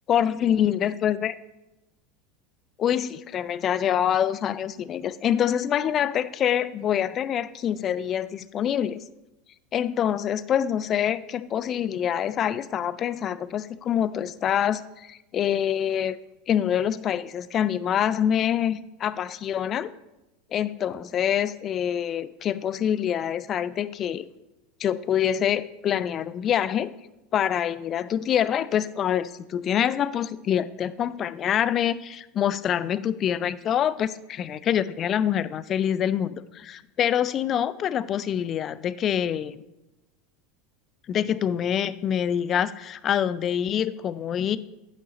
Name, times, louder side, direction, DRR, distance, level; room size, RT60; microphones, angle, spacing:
voice 1, 0.1-1.4 2.8-9.0 9.7-16.2 16.5-19.9 20.5-24.3 24.8-26.9 27.3-39.6 41.1-44.6, left 9 dB, 35° left, 16 dB, 0.3 m, -25 dB
8.9 x 5.4 x 4.1 m, 0.96 s
figure-of-eight pair, 80°, 0 cm